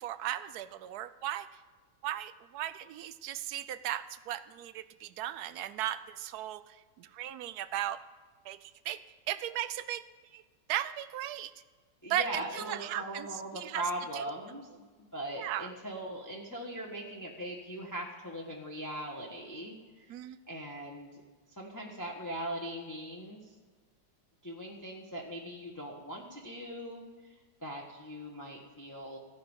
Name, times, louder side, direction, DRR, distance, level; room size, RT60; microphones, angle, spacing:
voice 1, 0.0-1.5 2.0-8.0 8.4-9.0 9.3-10.0 10.3-10.4 10.7-11.5 12.1-13.3 13.5-13.8 14.1-14.2 15.4-15.7 20.1-20.4, right 12 dB, 70° right, 13 dB, 1.0 m, -36 dB
voice 2, 12.0-20.2 20.5-21.2 21.5-23.5 24.4-29.2, right 1 dB, 10° left, -2 dB, 1.1 m, -40 dB
15.0 x 5.3 x 8.9 m, 1.4 s
omnidirectional pair, 1.9 m